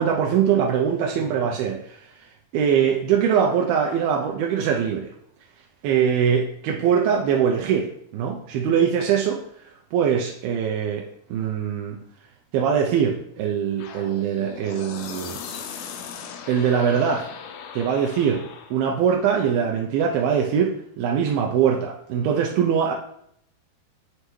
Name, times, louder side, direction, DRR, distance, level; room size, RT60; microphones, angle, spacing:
voice 1, 0.0-2.1 2.5-5.1 5.8-7.9 8.1-9.4 9.6-12.0 12.5-15.4 16.5-17.3 17.7-18.4 18.7-22.9, right 7 dB, 90° right, 0 dB, 2.1 m, -22 dB
sound 1, 13.8-18.8, left 7 dB, 80° left, 2.2 m, -38 dB
9.6 x 3.3 x 3.1 m, 0.70 s
omnidirectional pair, 4.9 m